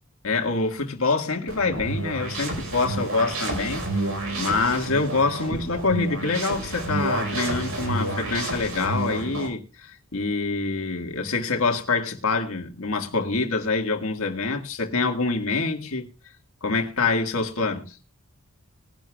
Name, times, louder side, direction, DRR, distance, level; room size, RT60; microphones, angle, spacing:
voice 1, 0.2-3.9 4.4-16.1 16.6-18.0, left 3 dB, 70° left, 1.8 m, -25 dB
sound 1, 1.5-9.5, right 2 dB, 70° right, 4.6 m, -30 dB
20.5 x 11.5 x 2.4 m
head